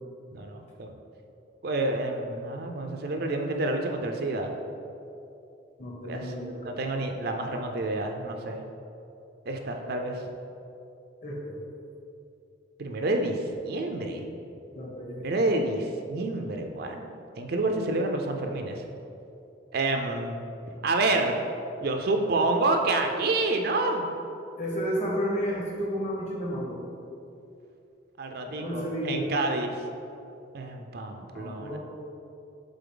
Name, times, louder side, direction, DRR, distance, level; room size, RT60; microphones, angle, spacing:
voice 1, 0.3-0.9 1.6-4.5 6.0-6.3 6.6-8.6 9.5-10.2 12.8-14.3 15.2-17.0 17.4-18.8 19.7-20.4 20.8-21.4 21.8-24.1 28.2-29.8 30.5-31.8, right 2 dB, 55° right, 4 dB, 0.5 m, -28 dB
voice 2, 5.8-6.7 11.2-11.6 14.7-15.3 24.6-26.8 28.5-29.3 31.3-31.8, equal, 40° left, -3 dB, 1.1 m, -32 dB
6.9 x 3.9 x 3.8 m, 2.7 s
head